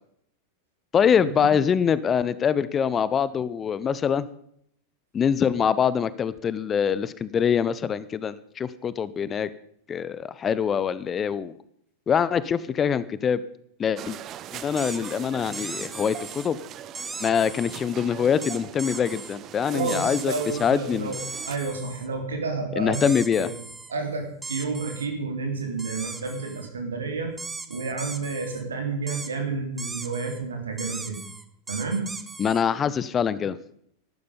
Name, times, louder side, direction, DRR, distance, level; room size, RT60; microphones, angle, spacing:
voice 1, 0.9-4.3 5.1-9.5 9.9-11.5 12.1-13.4 13.8-14.2 14.5-16.6 17.2-20.3 20.6-21.1 22.8-23.5 32.4-33.6, left 7 dB, 25° left, 17 dB, 0.6 m, -24 dB
sound 1, 14.0-21.6, right 11 dB, 30° right, 0.6 m, -40 dB
sound 2, 14.8-15.1 15.5-16.5 16.9-17.8 18.4-19.4 19.9-20.7 21.1-22.1 22.9-23.9 24.4-25.1 25.8-26.7 27.4-28.6 29.1-29.3 29.8-30.4 30.8-32.6, right 3 dB, 10° right, 1.0 m, -38 dB
voice 2, 19.7-23.1 23.4-23.6 23.9-27.3 27.7-31.2 31.7-32.1, right 4 dB, 70° right, 3 dB, 3.3 m, -30 dB
13.5 x 12.0 x 5.2 m, 0.69 s
figure-of-eight pair, 90°, 0 cm